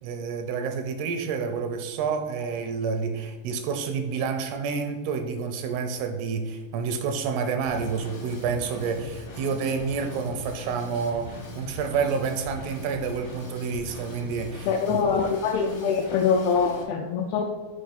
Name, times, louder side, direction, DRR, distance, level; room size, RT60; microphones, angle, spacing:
voice 1, 0.0-14.7, right 5 dB, 85° right, 6 dB, 2.5 m, -29 dB
Drum kit / Drum, 7.7-16.8, left 2 dB, 65° left, 1.2 m, -41 dB
voice 2, 14.7-17.4, left 6 dB, 90° left, 3 dB, 2.2 m, -24 dB
6.5 x 4.8 x 5.2 m, 1.4 s
omnidirectional pair, 4.9 m